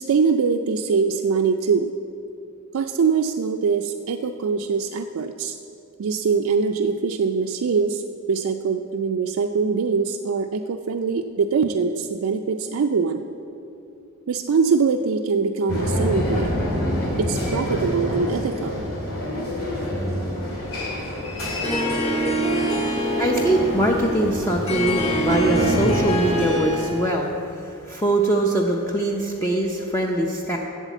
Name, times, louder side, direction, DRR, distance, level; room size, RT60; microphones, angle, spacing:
voice 1, 0.0-1.9 2.7-5.6 6.0-8.0 8.3-13.2 14.3-16.5 17.2-18.8, right 5 dB, 80° right, 5 dB, 0.4 m, -23 dB
sound 1, 15.7-27.0, left 1 dB, 75° left, 2.9 m, -27 dB
Harp, 21.6-27.1, right 1 dB, 30° left, 1.6 m, -25 dB
voice 2, 23.2-30.6, right 1 dB, 15° left, 0 dB, 0.6 m, -22 dB
8.2 x 7.3 x 8.1 m, 2.8 s
head